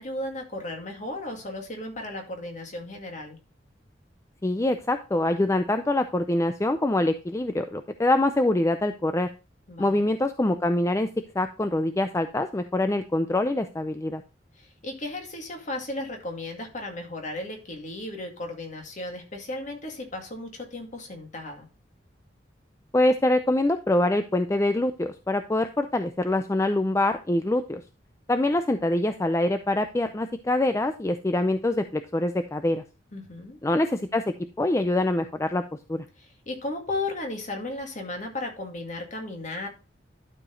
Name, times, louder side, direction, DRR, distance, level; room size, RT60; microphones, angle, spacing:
voice 1, 0.0-3.4 9.7-10.1 14.6-21.7 33.1-33.6 36.2-39.7, left 2 dB, 45° left, 2 dB, 2.2 m, -35 dB
voice 2, 4.4-9.3 9.8-11.1 11.3-14.2 22.9-27.8 28.3-32.8 33.6-35.6 35.9-36.0, left 1 dB, 15° left, 9 dB, 0.4 m, -24 dB
12.0 x 4.9 x 3.8 m, 0.30 s
head